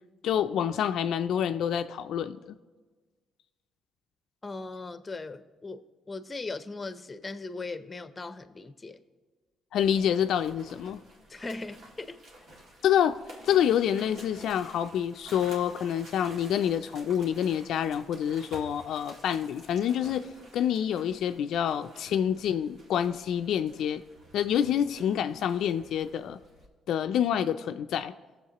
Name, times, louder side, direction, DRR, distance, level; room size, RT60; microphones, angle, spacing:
voice 1, 0.2-2.6 9.7-11.0 12.8-20.3 20.5-24.0 24.3-26.4 26.9-28.1, left 9 dB, 75° left, 9 dB, 0.3 m, -27 dB
voice 2, 4.4-9.0 11.3-12.2, left 3 dB, 25° left, 11 dB, 0.6 m, -39 dB
sound 1, 9.8-26.7, right 1 dB, 65° right, 2.1 m, -51 dB
18.0 x 7.2 x 2.9 m, 1.4 s
cardioid pair, 90°, 0 cm